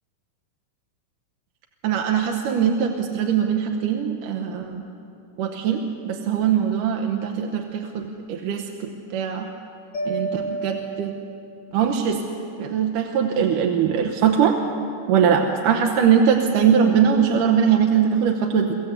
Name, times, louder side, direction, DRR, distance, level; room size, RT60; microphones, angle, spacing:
voice 1, 1.8-4.9 5.4-9.5 10.1-11.2 11.7-12.2 12.6-14.5 15.1-18.7, right 7 dB, 80° right, 3 dB, 2.5 m, -21 dB
Mallet percussion, 9.9-12.0, right 3 dB, 75° left, 5.4 m, -31 dB
24.5 x 14.5 x 8.1 m, 2.7 s
omnidirectional pair, 3.7 m